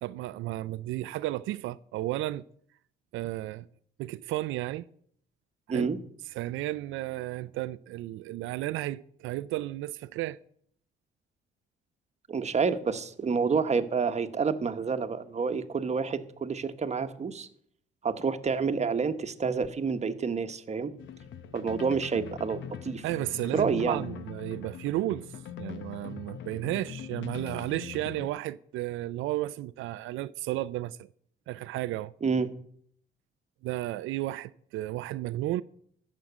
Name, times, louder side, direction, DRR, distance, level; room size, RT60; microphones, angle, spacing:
voice 1, 0.0-2.4 3.1-3.7 4.0-4.8 5.7-5.9 6.3-10.4 23.0-25.3 25.6-31.1 31.5-32.1 33.6-35.6, right 15 dB, 90° right, 0.4 m, -33 dB
voice 2, 12.3-17.5 18.0-20.9 21.5-23.0 23.5-24.0 32.2-32.5, right 5 dB, 35° right, 1.1 m, -28 dB
sound 1, 21.0-28.3, left 9 dB, 75° left, 0.8 m, -42 dB
13.5 x 6.4 x 8.1 m
cardioid pair, 90°, 20 cm